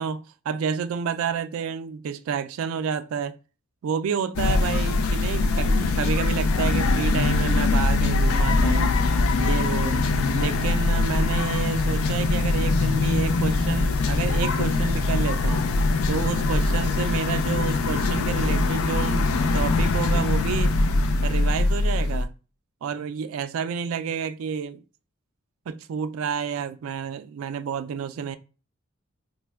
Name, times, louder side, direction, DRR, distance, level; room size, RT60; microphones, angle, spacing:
voice 1, 0.0-3.4 3.8-8.9 9.4-10.0 10.3-15.6 16.1-20.7 21.2-22.3 22.8-24.8 25.7-28.4, right 6 dB, 80° right, 0.3 m, -29 dB
sound 1, 4.4-22.2, left 3 dB, 85° left, 0.4 m, -22 dB
3.2 x 2.1 x 3.4 m
head